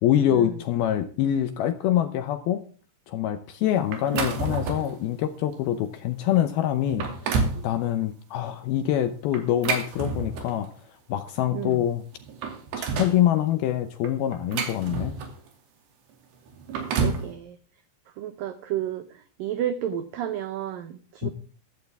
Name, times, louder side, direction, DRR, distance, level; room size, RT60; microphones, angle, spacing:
voice 1, 0.0-2.6 3.1-7.1 7.6-10.7 11.1-12.0 12.8-15.2 21.2-21.3, left 11 dB, 75° left, 10 dB, 2.3 m, -25 dB
sound 1, 3.9-5.0 5.5-5.7 6.3-6.4 6.8-7.6 9.3-10.7 11.7-11.8 12.1-13.2 14.0-15.5 16.5-17.3, right 4 dB, 65° right, 4.5 m, -29 dB
voice 2, 11.5-11.8 17.0-17.6 18.2-21.3, right 10 dB, 90° right, 11 dB, 1.9 m, -31 dB
15.0 x 14.0 x 3.6 m, 0.38 s
omnidirectional pair, 5.3 m